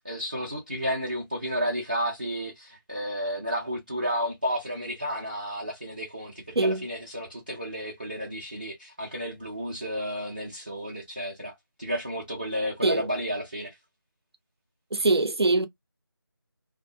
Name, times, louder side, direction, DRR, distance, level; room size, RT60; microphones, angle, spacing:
voice 1, 0.0-13.8, equal, 20° right, 0.4 m, -32 dB
voice 2, 6.6-6.9 12.8-13.1 14.9-15.7, right 2 dB, 80° right, 0.7 m, -23 dB
2.6 x 2.1 x 2.7 m
figure-of-eight pair, 170°, 13 cm